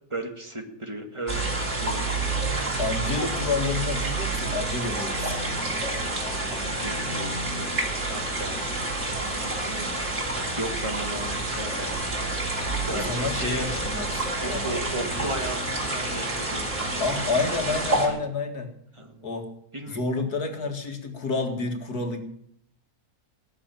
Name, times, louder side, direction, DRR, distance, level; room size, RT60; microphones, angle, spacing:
voice 1, 0.1-1.5 1.8-2.1 6.4-7.7 8.1-8.8 9.1-10.0 10.5-12.3 12.9-13.6 14.4-17.0 17.5-17.6 18.0-18.2 19.0-19.3 19.7-20.0, right 1 dB, 20° right, 4 dB, 2.1 m, -36 dB
sound 1, 1.3-18.1, right 2 dB, 50° right, 3.6 m, -28 dB
voice 2, 2.8-5.3 12.9-14.6 17.0-18.7 19.2-19.5 19.9-22.2, left 3 dB, 90° left, 4 dB, 2.5 m, -29 dB
19.0 x 6.9 x 8.9 m, 0.69 s
omnidirectional pair, 1.6 m